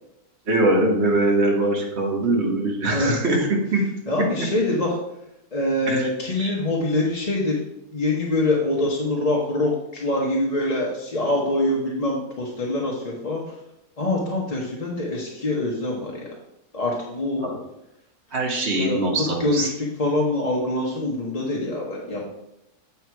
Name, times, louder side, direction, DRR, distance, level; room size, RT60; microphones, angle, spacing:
voice 1, 0.5-3.8 5.9-6.6 17.4-17.5 18.3-19.7, right 2 dB, 45° right, 0 dB, 1.8 m, -22 dB
voice 2, 4.1-4.9 5.5-7.6 7.9-13.4 14.0-16.3 16.7-17.4 18.7-19.0 19.4-22.3, left 2 dB, 30° left, -3 dB, 1.0 m, -24 dB
7.9 x 5.8 x 4.6 m, 0.85 s
omnidirectional pair, 1.6 m